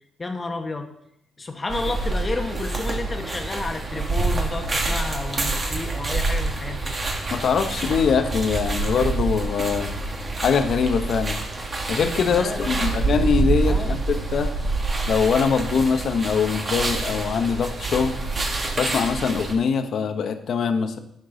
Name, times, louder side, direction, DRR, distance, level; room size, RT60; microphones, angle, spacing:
voice 1, 0.2-0.9 1.4-7.0 12.3-13.0 13.6-14.0, left 3 dB, 25° left, 5 dB, 1.2 m, -31 dB
sound 1, 1.7-19.5, right 3 dB, 35° right, 1.7 m, -27 dB
voice 2, 7.3-9.9 10.4-11.4 11.9-14.5 15.1-18.2 18.8-21.0, left 6 dB, 60° left, 8 dB, 0.9 m, -23 dB
10.5 x 5.9 x 3.9 m, 0.78 s
cardioid pair, 90°, 0 cm